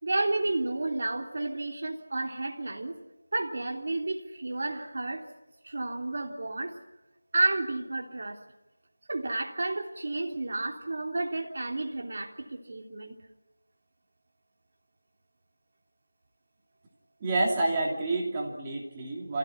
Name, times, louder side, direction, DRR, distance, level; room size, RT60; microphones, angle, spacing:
voice 1, 0.0-3.0 3.3-5.2 5.6-6.8 7.3-8.4 9.1-13.2, right 2 dB, 45° right, 2 dB, 3.4 m, -31 dB
voice 2, 17.2-19.4, right 2 dB, 15° right, -1 dB, 2.9 m, -28 dB
27.0 x 16.5 x 9.7 m, 0.98 s
figure-of-eight pair, 175°, 0 cm